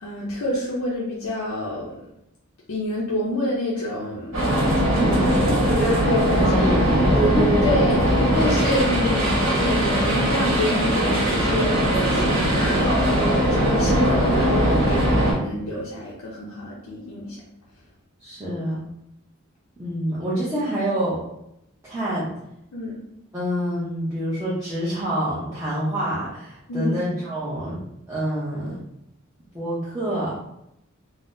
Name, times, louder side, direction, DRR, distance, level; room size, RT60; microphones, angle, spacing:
voice 1, 0.0-2.0 2.7-4.4 5.0-7.1 7.6-17.4 22.7-22.9 26.7-27.0, left 1 dB, 90° left, -5 dB, 0.6 m, -28 dB
sound 1, 4.3-15.3, equal, 65° right, 1.2 m, -20 dB
voice 2, 6.4-7.7 18.2-18.8 19.8-21.2 21.8-22.3 23.3-28.8 29.5-30.4, right 1 dB, 15° right, -9 dB, 0.6 m, -27 dB
3.9 x 2.0 x 2.5 m, 0.81 s
head